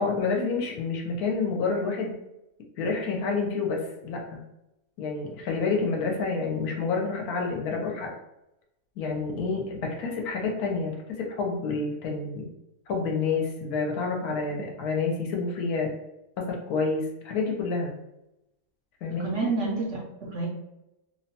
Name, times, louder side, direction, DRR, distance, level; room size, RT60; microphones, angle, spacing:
voice 1, 0.0-2.2 2.8-4.4 5.0-8.1 9.0-12.5 12.9-15.9 16.4-17.9 19.0-19.3, left 4 dB, 75° left, 1 dB, 1.0 m, -28 dB
voice 2, 19.1-20.5, right 3 dB, 65° right, -3 dB, 0.8 m, -30 dB
2.9 x 2.1 x 2.7 m, 0.89 s
omnidirectional pair, 1.7 m